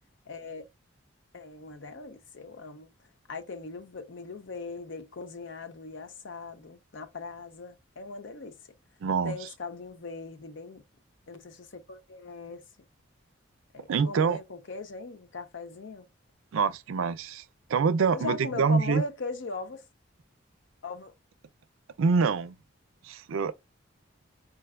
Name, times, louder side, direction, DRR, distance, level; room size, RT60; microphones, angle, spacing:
voice 1, 0.3-0.6 1.3-2.9 3.3-8.6 9.2-10.8 11.3-12.6 13.7-16.1 18.1-19.8 20.8-21.1, left 3 dB, 65° left, 0.6 m, -39 dB
voice 2, 9.0-9.5 13.9-14.4 16.5-17.4 17.7-19.0 22.0-22.6 23.0-23.5, right 5 dB, 75° right, 0.4 m, -25 dB
4.5 x 2.2 x 2.2 m
head